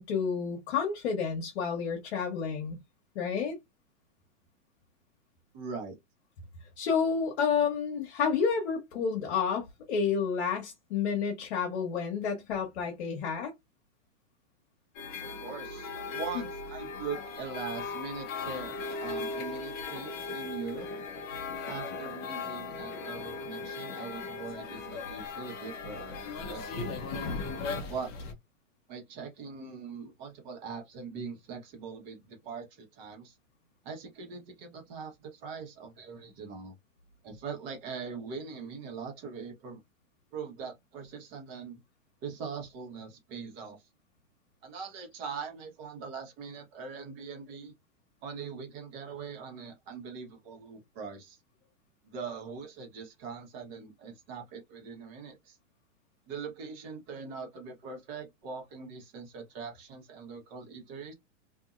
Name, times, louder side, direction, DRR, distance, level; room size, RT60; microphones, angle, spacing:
voice 1, 0.0-2.8 3.1-3.6 6.8-13.5 16.3-16.4, left 6 dB, 55° left, 1.1 m, -30 dB
voice 2, 5.5-6.0 15.4-20.9 21.7-26.2 26.5-26.9 27.9-28.1 28.9-33.4 33.8-36.7 37.2-39.8 40.3-41.8 42.2-43.8 44.6-47.7 48.2-51.4 52.0-55.6 56.3-61.1, right 5 dB, 35° right, 1.3 m, -41 dB
sound 1, 14.9-28.3, left 4 dB, 25° left, 0.7 m, -38 dB
2.8 x 2.7 x 2.4 m
hypercardioid pair, 145°, 38 cm